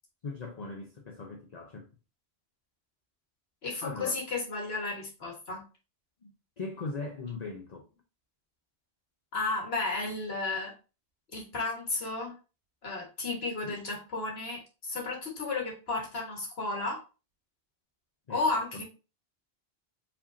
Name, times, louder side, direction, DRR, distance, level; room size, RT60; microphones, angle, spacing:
voice 1, 0.2-1.9 3.8-4.1 6.2-7.9 13.6-13.8 18.3-18.8, left 3 dB, 45° left, 0.7 m, -40 dB
voice 2, 3.6-5.6 9.3-10.7 11.3-12.3 12.8-17.0 18.3-18.8, left 3 dB, 70° left, 1.8 m, -33 dB
4.9 x 3.6 x 2.6 m
omnidirectional pair, 1.1 m